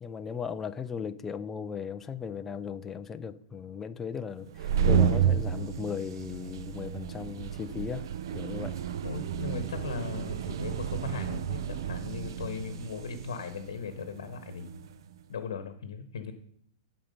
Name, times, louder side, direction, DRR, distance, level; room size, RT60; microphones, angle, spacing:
voice 1, 0.0-8.1 8.3-8.8, left 6 dB, 10° left, 9 dB, 0.4 m, -37 dB
sound 1, 4.4-14.9, right 8 dB, 60° right, 0.5 m, -31 dB
voice 2, 9.0-14.9 15.3-16.3, left 5 dB, 85° left, 8 dB, 1.0 m, -38 dB
11.5 x 4.4 x 5.3 m, 0.67 s
hypercardioid pair, 160°, 3 cm